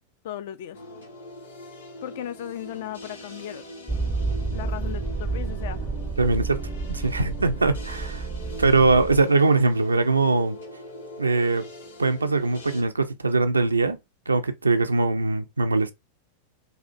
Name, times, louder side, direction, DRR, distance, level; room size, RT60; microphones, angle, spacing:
voice 1, 0.2-0.8 2.0-3.7 4.5-5.9, left 11 dB, 55° left, 0.4 m, -36 dB
sound 1, 0.7-12.8, left 1 dB, 70° left, 1.1 m, -42 dB
Motor vehicle (road), 3.9-9.2, right 4 dB, 10° right, 0.5 m, -30 dB
voice 2, 6.2-8.3 8.6-10.6 11.2-11.7 12.0-14.0 14.3-15.9, right 3 dB, 80° right, 0.4 m, -22 dB
4.1 x 2.3 x 2.6 m
figure-of-eight pair, 90°, 0 cm